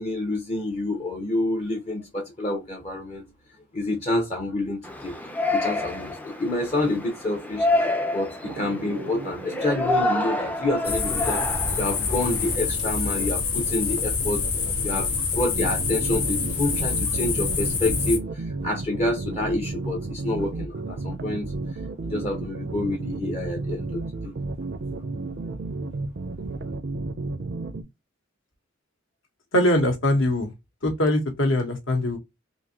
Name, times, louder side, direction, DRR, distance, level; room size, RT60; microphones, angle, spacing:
voice 1, 0.0-3.3 3.7-5.1 5.5-14.5 14.8-21.5 22.0-24.3, left 2 dB, 30° left, 0.7 m, -28 dB
Yell, 4.8-12.6, left 2 dB, 10° left, 0.4 m, -28 dB
sound 1, 8.4-27.8, right 3 dB, 50° right, 0.5 m, -34 dB
sound 2, 10.8-18.2, left 5 dB, 85° left, 1.1 m, -26 dB
voice 2, 29.5-30.5 30.8-32.2, left 1 dB, 65° left, 1.1 m, -22 dB
3.7 x 2.6 x 2.8 m
head